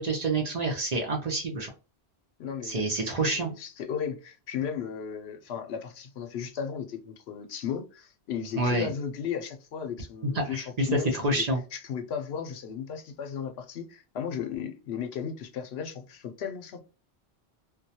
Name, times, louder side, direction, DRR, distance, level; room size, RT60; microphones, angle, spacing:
voice 1, 0.0-1.7 2.6-3.5 8.6-8.9 10.3-11.6, right 2 dB, 45° right, 0.6 m, -27 dB
voice 2, 2.4-11.4 11.7-16.8, left 7 dB, 80° left, 0.8 m, -35 dB
2.3 x 2.2 x 2.7 m
omnidirectional pair, 1.1 m